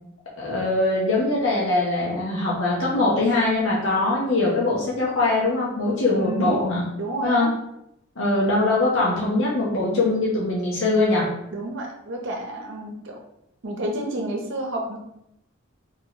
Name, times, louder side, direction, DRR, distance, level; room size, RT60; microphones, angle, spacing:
voice 1, 0.4-6.8 7.2-7.5 8.2-11.3, left 2 dB, 80° left, -6 dB, 0.9 m, -22 dB
voice 2, 6.1-6.6 7.0-7.5 11.5-13.2 13.6-15.0, right 1 dB, 65° right, 1 dB, 0.7 m, -30 dB
3.0 x 3.0 x 3.9 m, 0.79 s
head